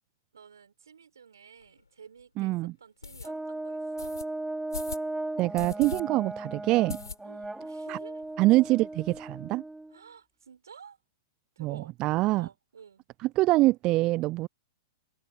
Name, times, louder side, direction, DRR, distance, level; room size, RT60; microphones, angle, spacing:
voice 1, 0.3-4.2 7.2-8.3 9.9-11.0 11.6-11.9 12.2-13.0, right 7 dB, 70° right, 6.0 m, -52 dB
sound 1, 1.6-1.7 2.2-2.3 3.0-3.3 4.0-4.2 4.7-5.1 5.5-6.0 6.3-6.4 6.9-7.5 7.9-8.0 8.2-8.3 8.6-9.2, left 4 dB, 80° left, 6.5 m, -39 dB
voice 2, 2.4-2.7 5.4-7.0 7.9-8.0 8.4-9.6 11.6-12.5 13.4-14.5, right 19 dB, 35° right, 0.4 m, -25 dB
Brass instrument, 3.2-10.0, right 2 dB, 5° right, 4.5 m, -37 dB
figure-of-eight pair, 105°, 2 cm